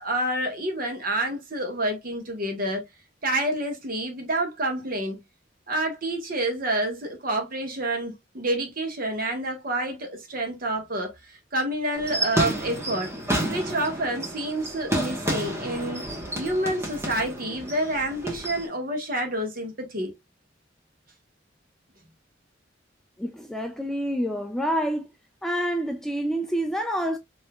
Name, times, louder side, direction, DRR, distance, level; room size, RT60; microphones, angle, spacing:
voice 1, 0.0-2.8 3.2-5.2 5.7-13.1 13.5-16.1 16.4-20.1, right 1 dB, 50° right, 1.4 m, -28 dB
sound 1, 12.0-18.7, right 1 dB, 15° right, 1.2 m, -30 dB
voice 2, 23.2-25.1 25.4-27.2, equal, ahead, 0.3 m, -27 dB
4.8 x 3.1 x 2.3 m
head